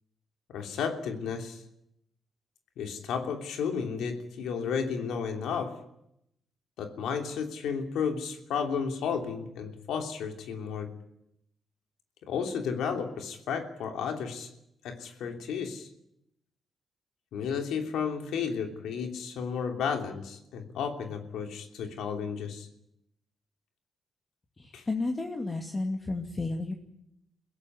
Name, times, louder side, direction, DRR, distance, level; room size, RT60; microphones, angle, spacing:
voice 1, 0.5-1.6 2.8-5.8 6.8-10.9 12.2-14.5 14.8-15.9 17.3-22.7 24.7-24.8, left 6 dB, 85° left, 4 dB, 3.0 m, -33 dB
voice 2, 24.6-26.7, left 2 dB, 30° left, 3 dB, 2.6 m, -32 dB
22.5 x 17.0 x 9.6 m, 0.80 s
cardioid pair, 75°, 0 cm